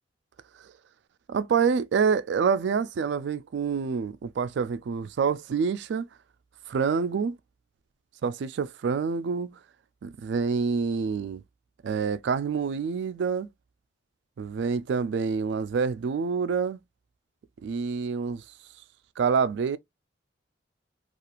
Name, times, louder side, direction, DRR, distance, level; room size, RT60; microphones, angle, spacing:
voice 1, 1.3-6.1 6.7-7.4 8.2-9.6 10.0-11.4 11.8-13.5 14.4-16.8 17.6-18.4 19.2-19.8, right 5 dB, 65° right, 0.3 m, -27 dB
2.4 x 2.4 x 2.9 m
head